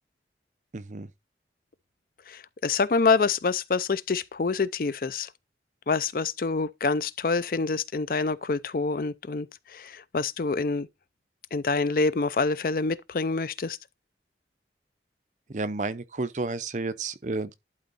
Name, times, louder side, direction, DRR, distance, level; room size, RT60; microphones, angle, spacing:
voice 1, 0.7-1.1 15.5-17.5, right 3 dB, 45° right, 0.6 m, -31 dB
voice 2, 2.3-5.3 5.9-9.5 9.7-10.9 11.5-13.8, left 4 dB, 50° left, 0.5 m, -26 dB
11.5 x 3.9 x 4.1 m
head